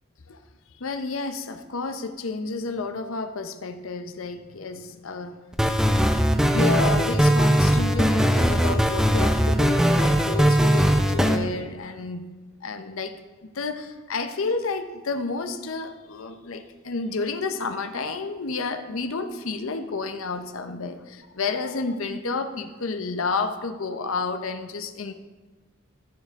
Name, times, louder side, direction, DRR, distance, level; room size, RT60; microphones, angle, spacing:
voice 1, 0.8-5.4 6.5-12.3 12.6-13.2 13.4-25.1, left 3 dB, 70° left, 8 dB, 0.7 m, -30 dB
sound 1, 5.5-11.4, equal, 5° right, 0.5 m, -20 dB
13.5 x 6.6 x 3.6 m, 1.2 s
head